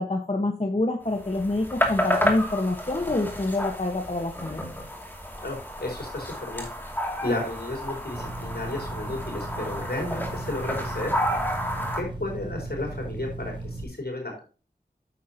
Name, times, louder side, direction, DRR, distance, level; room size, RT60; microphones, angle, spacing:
voice 1, 0.0-4.6, left 2 dB, 40° left, 3 dB, 1.3 m, -27 dB
sound 1, 1.2-12.0, equal, 10° left, 2.6 m, -31 dB
voice 2, 5.4-6.7 7.2-11.1 11.9-14.4, left 2 dB, 75° left, 0 dB, 4.5 m, -33 dB
sound 2, 8.1-13.8, right 2 dB, 30° right, 2.6 m, -37 dB
9.5 x 7.4 x 2.9 m, 0.35 s
wide cardioid pair, 40°, 17 cm